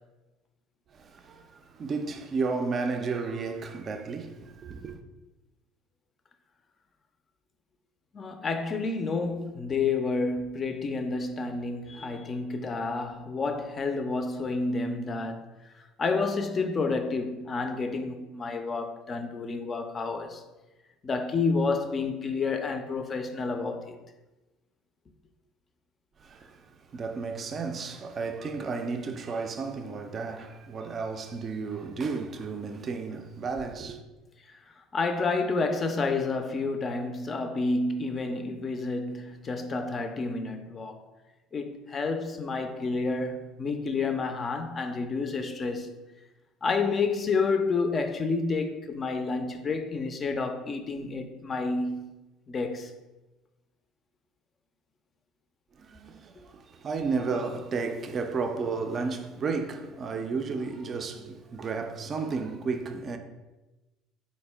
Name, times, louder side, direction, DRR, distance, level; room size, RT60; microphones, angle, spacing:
voice 1, 0.9-5.0 26.2-34.0 55.8-63.2, right 4 dB, 40° right, 0.3 m, -33 dB
voice 2, 8.1-15.4 16.0-20.4 21.0-24.0 34.9-41.0 41.5-45.9 46.6-52.1 52.5-52.9, left 4 dB, 35° left, 0.4 m, -29 dB
4.0 x 2.1 x 3.3 m
hypercardioid pair, 75°, 0 cm